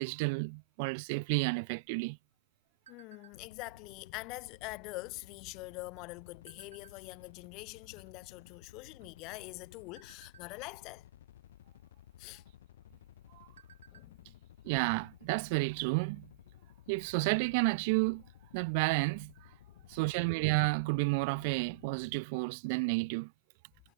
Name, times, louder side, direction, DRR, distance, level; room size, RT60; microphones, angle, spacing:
voice 1, 0.0-2.2 13.3-13.5 14.6-16.3 16.9-18.2 18.5-19.3 19.9-23.3, right 30 dB, 30° right, 0.4 m, -31 dB
sound 1, 1.8-3.7 4.1-4.4 4.7-5.1 5.8-7.3 7.9-8.0 8.2-9.5 10.0-10.5 11.0-11.2 11.5-11.8 12.2-12.7 13.2-14.6 15.7-15.8 16.2-16.3 16.7-17.7 18.0-18.1 18.5-18.6, right 9 dB, 80° right, 7.7 m, -61 dB
voice 2, 2.9-11.1 12.2-12.4 13.9-14.4 19.7-19.9, left 23 dB, 25° left, 0.7 m, -45 dB
sound 2, 3.3-22.2, left 12 dB, 55° left, 6.4 m, -57 dB
supercardioid pair, 180°, 0 cm